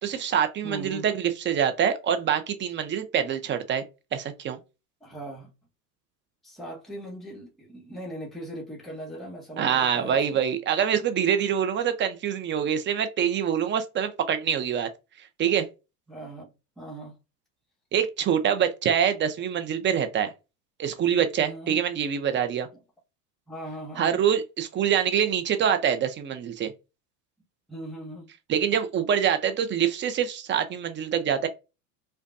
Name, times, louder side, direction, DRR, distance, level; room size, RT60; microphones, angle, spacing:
voice 1, 0.0-3.8 4.1-4.6 9.6-14.9 15.4-15.7 17.9-20.3 20.8-22.7 24.0-26.7 28.5-31.5, right 8 dB, 25° right, 0.6 m, -25 dB
voice 2, 0.6-1.1 5.0-5.5 6.4-10.4 16.1-17.2 21.4-21.8 22.7-22.8 23.5-24.2 27.7-28.3, right 1 dB, ahead, 1.2 m, -39 dB
4.9 x 2.3 x 2.5 m
hypercardioid pair, 85°, 48 cm